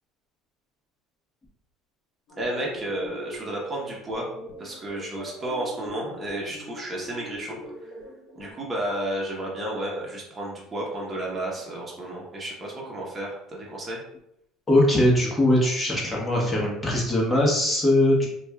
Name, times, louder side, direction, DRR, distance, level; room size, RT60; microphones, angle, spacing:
sound 1, 2.3-8.5, equal, 70° left, 0.9 m, -42 dB
voice 1, 2.4-4.3 4.6-7.9 8.4-14.0, right 1 dB, 25° right, -3 dB, 0.9 m, -32 dB
voice 2, 14.7-18.3, left 1 dB, 20° left, -4 dB, 1.1 m, -21 dB
4.3 x 2.3 x 2.2 m, 0.79 s
supercardioid pair, 110°, 0 cm